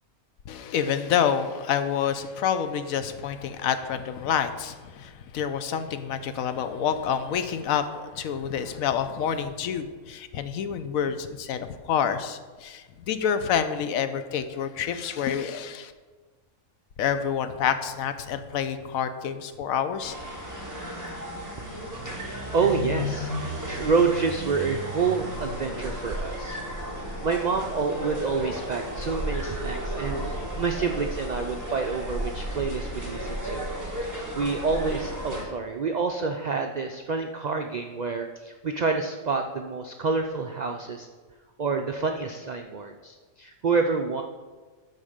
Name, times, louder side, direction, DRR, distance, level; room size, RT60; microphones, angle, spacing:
voice 1, 0.5-15.9 17.0-20.1, left 8 dB, 80° left, 10 dB, 1.1 m, -28 dB
sound 1, 20.0-35.4, equal, 15° right, 1.4 m, -33 dB
voice 2, 21.6-26.6 27.2-41.1 41.6-44.2, right 4 dB, 85° right, 4 dB, 0.3 m, -28 dB
12.0 x 4.2 x 5.0 m, 1.4 s
omnidirectional pair, 1.4 m